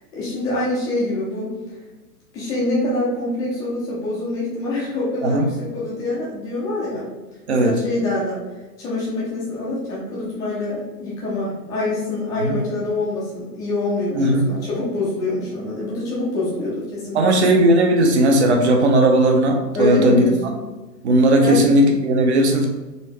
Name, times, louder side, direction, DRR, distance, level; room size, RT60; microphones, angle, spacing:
voice 1, 0.1-1.5 2.3-7.1 7.5-8.4 8.8-17.6 19.7-20.6 21.4-21.7, left 2 dB, 5° left, -7 dB, 0.5 m, -25 dB
voice 2, 7.5-7.8 12.4-12.6 14.2-14.5 17.1-20.2 21.0-22.7, right 1 dB, 45° right, 3 dB, 0.9 m, -16 dB
4.1 x 3.3 x 3.3 m, 1.2 s
figure-of-eight pair, 115°, 49 cm